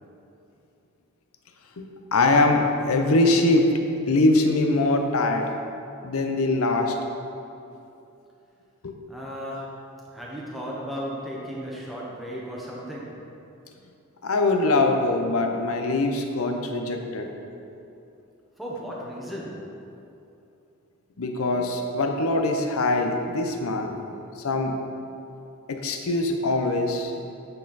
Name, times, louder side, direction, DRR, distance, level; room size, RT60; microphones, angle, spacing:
voice 1, 2.1-3.7 4.1-5.5 6.0-6.9 8.8-9.0 14.2-17.3 21.2-24.0 24.4-24.8 25.7-27.1, left 2 dB, 75° left, 4 dB, 0.7 m, -22 dB
voice 2, 9.1-13.4 18.6-19.8, equal, ahead, -5 dB, 0.8 m, -35 dB
8.8 x 4.2 x 4.0 m, 2.8 s
head